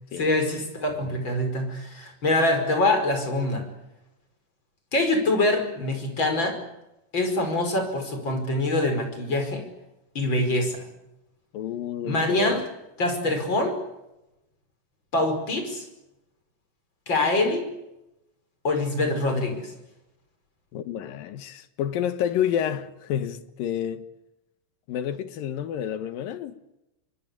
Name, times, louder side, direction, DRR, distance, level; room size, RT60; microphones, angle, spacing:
voice 1, 0.2-3.7 4.9-6.6 7.1-9.6 10.1-10.9 12.0-12.6 13.0-13.8 15.1-15.9 17.1-17.7 18.6-19.7, left 2 dB, 30° left, 5.8 m, -24 dB
voice 2, 11.5-12.6 20.7-24.1 24.9-26.6, left 9 dB, 80° left, 3.0 m, -29 dB
25.0 x 23.5 x 8.5 m
omnidirectional pair, 4.1 m